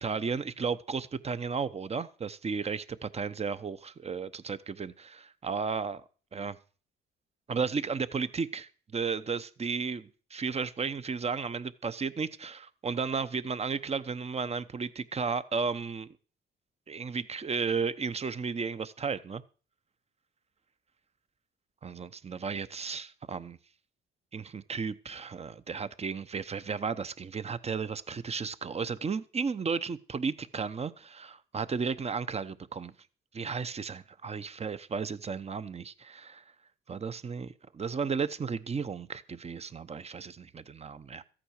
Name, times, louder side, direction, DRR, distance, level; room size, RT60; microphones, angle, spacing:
voice 1, 0.0-6.0 6.3-6.6 7.5-16.1 16.9-19.4 21.8-23.6 24.3-32.9 33.3-36.4 36.9-41.2, right 5 dB, 30° right, 1.0 m, -34 dB
14.0 x 8.9 x 6.6 m
cardioid pair, 90°, 20 cm